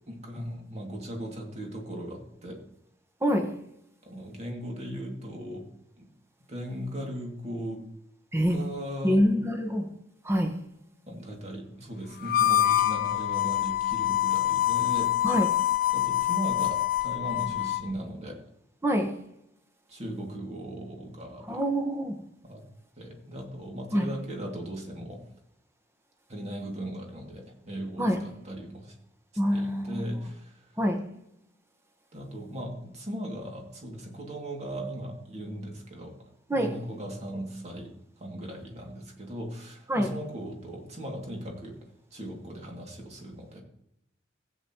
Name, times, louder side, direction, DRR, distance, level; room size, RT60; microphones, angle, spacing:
voice 1, 0.1-2.6 4.0-5.7 6.0-6.1 6.5-7.9 8.5-9.2 11.1-15.1 15.9-18.4 19.9-21.6 22.4-22.6 23.0-25.2 26.3-28.9 29.5-30.7 32.1-36.2 36.5-37.9 38.2-41.8 42.1-43.6, equal, 35° right, 1 dB, 2.3 m, -38 dB
voice 2, 3.2-3.6 8.3-8.6 9.0-9.9 10.2-10.6 15.2-15.6 18.8-19.2 21.4-22.2 23.9-24.1 28.0-28.2 29.4-30.2 30.8-31.1 36.5-36.7 39.9-40.1, equal, 15° right, 4 dB, 1.2 m, -26 dB
Harmonica, 12.2-17.9, left 13 dB, 50° left, 0.6 m, -26 dB
16.0 x 8.7 x 3.0 m, 0.78 s
head